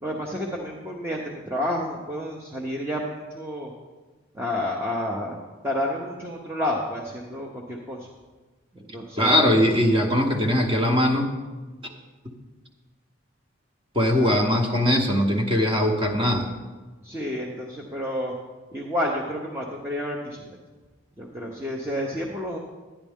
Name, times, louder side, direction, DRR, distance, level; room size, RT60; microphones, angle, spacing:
voice 1, 0.0-3.7 4.3-8.1 8.7-9.4 17.0-18.3 18.7-20.6 21.2-22.6, left 1 dB, 10° right, -2 dB, 0.7 m, -30 dB
voice 2, 9.2-11.3 13.9-16.5, equal, 25° right, 3 dB, 1.1 m, -21 dB
11.0 x 10.0 x 3.6 m, 1.3 s
head